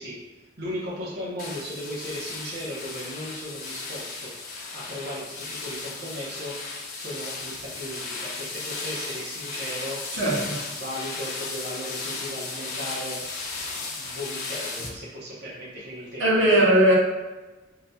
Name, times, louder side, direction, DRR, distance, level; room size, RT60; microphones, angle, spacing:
voice 1, 0.0-4.4 4.7-10.2 10.6-13.2 13.8-16.6, equal, 55° right, -7 dB, 0.9 m, -37 dB
sound 1, 1.4-14.9, left 3 dB, 50° left, 0.9 m, -35 dB
voice 2, 10.1-10.6 16.2-16.9, right 1 dB, 85° right, -5 dB, 1.2 m, -19 dB
5.8 x 2.7 x 2.3 m, 1.2 s
head